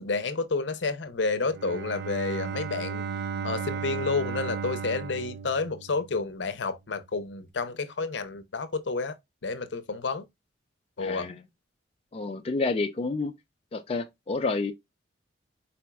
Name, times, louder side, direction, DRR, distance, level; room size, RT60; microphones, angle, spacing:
voice 1, 0.0-3.0 3.4-9.1 9.4-10.3 11.0-11.3, left 4 dB, 75° left, 0.7 m, -30 dB
Bowed string instrument, 1.4-6.3, right 6 dB, 60° right, 0.4 m, -35 dB
voice 2, 11.0-11.4 12.1-13.3 13.7-14.7, left 3 dB, 30° left, 0.3 m, -29 dB
4.3 x 4.2 x 2.2 m
head